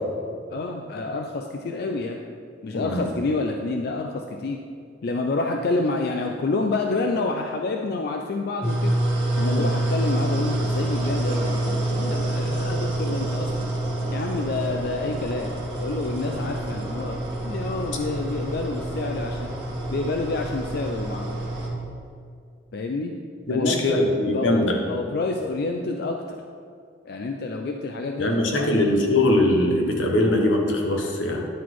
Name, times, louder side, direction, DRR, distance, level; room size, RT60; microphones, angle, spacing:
voice 1, 0.5-2.2 2.6-4.6 5.0-8.9 9.4-13.7 14.1-15.5 15.8-19.5 19.9-21.4 22.7-23.1 23.5-26.4 27.1-28.7, left 3 dB, 55° left, 3 dB, 0.4 m, -28 dB
voice 2, 2.7-3.0 9.4-9.6 23.5-24.8 28.2-31.4, left 1 dB, 80° left, 1 dB, 1.1 m, -22 dB
sound 1, 8.6-21.7, right 1 dB, 30° right, 1.6 m, -27 dB
10.0 x 4.0 x 4.6 m, 2.3 s
head